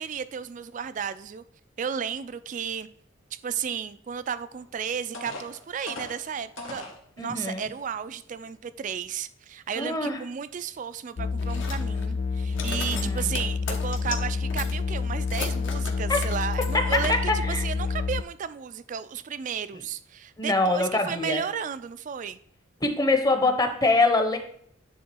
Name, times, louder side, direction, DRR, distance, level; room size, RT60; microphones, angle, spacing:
voice 1, 0.0-1.4 1.8-2.9 3.4-6.8 7.2-22.4, right 7 dB, 40° right, 0.3 m, -33 dB
sound 1, 4.6-4.7 5.1-7.0 7.7-7.8 8.3-8.5, left 2 dB, 90° left, 1.8 m, -40 dB
voice 2, 7.2-7.6 9.8-10.2 12.9-13.3 16.1-16.2 16.7-16.8 17.3-17.6 20.4-21.4 22.8-24.4, left 2 dB, 20° left, 0.8 m, -24 dB
sound 2, 11.2-18.2, left 4 dB, 40° left, 0.3 m, -28 dB
sound 3, 11.4-12.2 12.5-14.2 14.5-17.2, left 5 dB, 70° left, 1.1 m, -37 dB
9.4 x 3.7 x 4.5 m
head